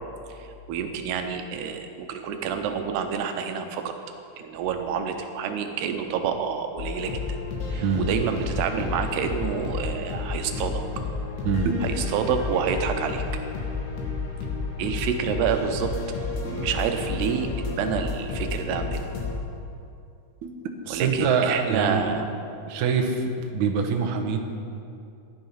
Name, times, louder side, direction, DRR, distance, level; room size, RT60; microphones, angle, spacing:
voice 1, 0.4-3.9 4.4-7.1 7.7-10.8 11.8-13.2 14.8-15.9 16.4-19.1 20.9-22.3, right 7 dB, 85° right, 6 dB, 3.0 m, -28 dB
sound 1, 6.8-19.4, left 4 dB, 80° left, 3.9 m, -31 dB
voice 2, 20.4-22.2 22.7-24.4, right 5 dB, 65° right, 2 dB, 2.0 m, -25 dB
14.0 x 11.0 x 5.8 m, 2.6 s
omnidirectional pair, 4.6 m